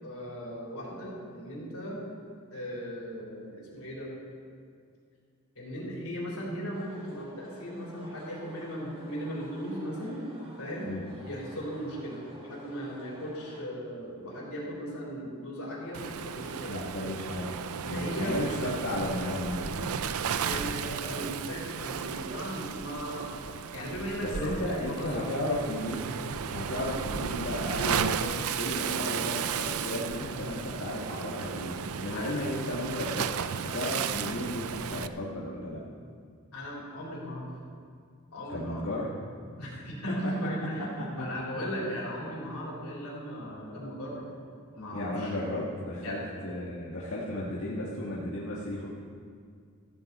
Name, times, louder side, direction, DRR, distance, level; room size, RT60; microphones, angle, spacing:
voice 1, 0.0-2.0 2.5-4.1 5.6-10.3 10.6-17.1 17.9-18.5 20.4-25.1 26.7-26.9 32.1-32.4 36.5-37.5 38.3-38.8 39.6-44.3 44.7-45.3 46.0-46.2, equal, 90° left, -4 dB, 4.0 m, -37 dB
sound 1, 6.7-13.6, right 1 dB, 25° right, 2.2 m, -52 dB
Waves surf, 15.9-35.1, right 7 dB, 80° right, 0.5 m, -34 dB
voice 2, 16.7-17.5 17.8-20.0 24.2-26.2 26.5-35.8 38.5-39.1 40.2-40.3 41.0-41.3 44.9-48.9, left 1 dB, 70° left, -6 dB, 1.7 m, -34 dB
14.0 x 13.5 x 4.2 m, 2.1 s
head